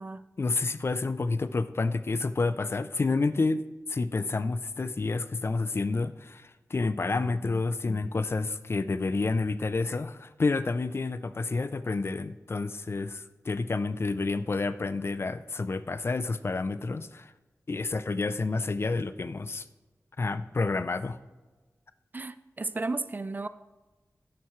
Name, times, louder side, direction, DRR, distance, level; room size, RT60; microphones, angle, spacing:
voice 1, 0.4-3.6 3.9-17.3 17.7-19.6 20.2-21.2, left 3 dB, 45° left, 13 dB, 0.5 m, -29 dB
voice 2, 22.1-23.5, right 3 dB, 30° right, 13 dB, 0.4 m, -33 dB
12.0 x 10.5 x 3.2 m, 1.2 s
wide cardioid pair, 110°, 6 cm